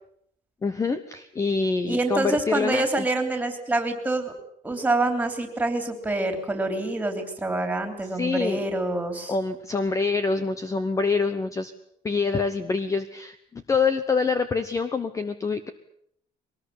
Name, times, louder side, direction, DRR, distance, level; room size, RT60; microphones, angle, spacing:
voice 1, 0.6-3.1 8.1-8.6 9.3-11.7 12.0-15.7, left 4 dB, 20° left, 11 dB, 1.0 m, -26 dB
voice 2, 1.8-4.3 4.6-9.3, right 2 dB, 10° right, 6 dB, 3.3 m, -26 dB
23.0 x 19.5 x 8.7 m, 0.68 s
cardioid pair, 170°, 16 cm